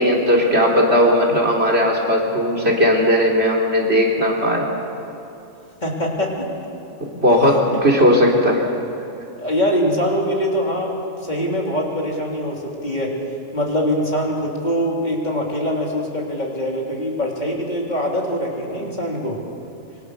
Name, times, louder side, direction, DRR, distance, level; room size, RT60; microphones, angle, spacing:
voice 1, 0.0-4.7 7.1-8.6, equal, 50° right, 0 dB, 3.6 m, -17 dB
voice 2, 5.8-6.5 7.3-7.4 7.7-7.8 9.4-13.1 13.5-19.4, equal, 35° left, -2 dB, 3.6 m, -23 dB
26.0 x 23.5 x 6.7 m, 2.8 s
omnidirectional pair, 1.4 m